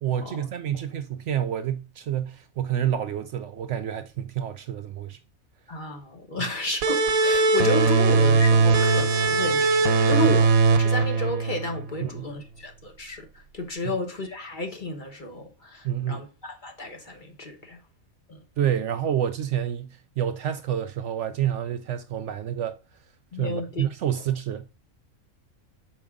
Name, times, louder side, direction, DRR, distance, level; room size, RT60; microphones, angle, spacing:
voice 1, 0.0-5.2 12.0-12.3 15.8-16.2 18.6-22.8 23.4-24.7, right 10 dB, 65° right, 0.8 m, -28 dB
voice 2, 5.7-13.3 13.5-17.8 18.3-18.4 23.3-23.8 24.1-24.2, left 1 dB, 40° left, 1.1 m, -32 dB
sound 1, 6.8-12.1, right 4 dB, 90° right, 1.3 m, -20 dB
6.4 x 4.7 x 3.5 m
omnidirectional pair, 1.5 m